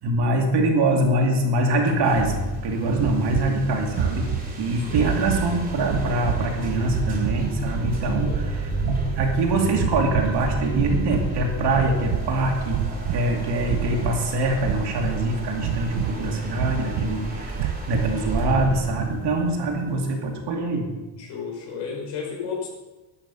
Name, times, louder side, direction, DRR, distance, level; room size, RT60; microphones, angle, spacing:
voice 1, 0.0-4.3 4.6-12.8 13.1-20.9, right 2 dB, 65° right, 1 dB, 2.6 m, -24 dB
sound 1, 1.8-20.3, right 2 dB, 20° right, 2.7 m, -32 dB
sound 2, 2.9-3.6 3.9-4.5 4.9-5.5 5.9-6.5 6.8-7.4 7.8-8.5 8.8-9.4 9.7-10.4 10.7-11.3 11.7-12.3 12.7-13.2 13.6-14.2 14.6-15.2 15.6-16.2 16.6-17.1 17.5-18.1, right 13 dB, 85° right, 0.7 m, -28 dB
voice 2, 4.9-5.2 8.2-8.5 21.2-22.7, left 6 dB, 75° left, -1 dB, 5.2 m, -33 dB
12.0 x 9.8 x 5.6 m, 1.1 s
cardioid pair, 155°, 44 cm